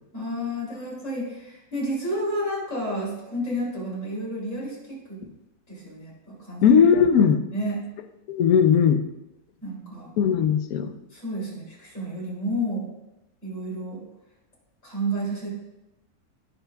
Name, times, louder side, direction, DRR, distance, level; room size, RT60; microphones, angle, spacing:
voice 1, 0.1-5.0 5.7-6.8 7.5-7.8 9.6-10.1 11.1-12.9 13.4-14.0 14.8-15.5, equal, 55° left, -5 dB, 3.4 m, -30 dB
voice 2, 6.6-7.4 8.3-9.0 10.2-10.9, left 7 dB, 75° left, 9 dB, 1.1 m, -18 dB
15.5 x 5.8 x 2.3 m, 0.94 s
omnidirectional pair, 1.6 m